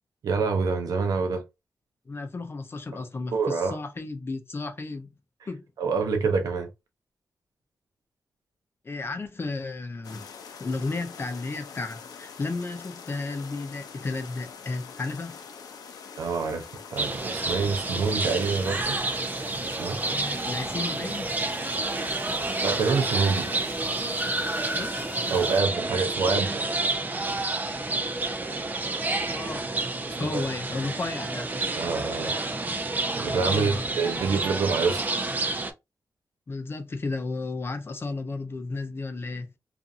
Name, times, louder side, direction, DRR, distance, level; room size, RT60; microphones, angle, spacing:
voice 1, 0.2-1.4 3.3-3.8 5.8-6.7 16.2-19.0 19.5-20.0 22.6-23.5 25.3-26.6 30.0-30.4 31.8-32.3 33.2-35.1, right 4 dB, 90° right, 0.6 m, -26 dB
voice 2, 2.1-5.1 5.5-5.6 8.8-10.3 10.6-15.4 20.1-21.4 24.7-24.9 29.3-29.7 30.2-31.5 33.4-33.8 36.5-39.5, left 3 dB, 40° left, 0.6 m, -33 dB
sound 1, 10.0-25.6, left 6 dB, 90° left, 0.5 m, -44 dB
sound 2, 17.0-35.7, right 2 dB, 30° right, 0.4 m, -29 dB
2.6 x 2.5 x 2.5 m
cardioid pair, 80°, 6 cm